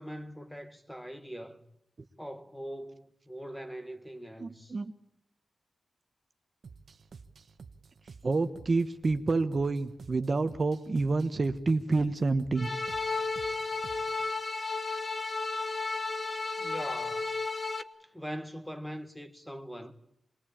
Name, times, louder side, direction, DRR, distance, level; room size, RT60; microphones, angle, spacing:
voice 1, 0.0-1.6 2.2-4.8 16.6-17.3 18.0-19.9, equal, 5° left, 1.8 m, -42 dB
voice 2, 4.4-4.9 8.2-12.7 13.1-13.2, right 3 dB, 40° right, 1.1 m, -28 dB
sound 1, 6.6-14.3, right 5 dB, 60° right, 1.2 m, -52 dB
sound 2, 12.6-17.8, left 3 dB, 30° left, 1.1 m, -33 dB
26.0 x 21.5 x 8.8 m
wide cardioid pair, 120°, 0 cm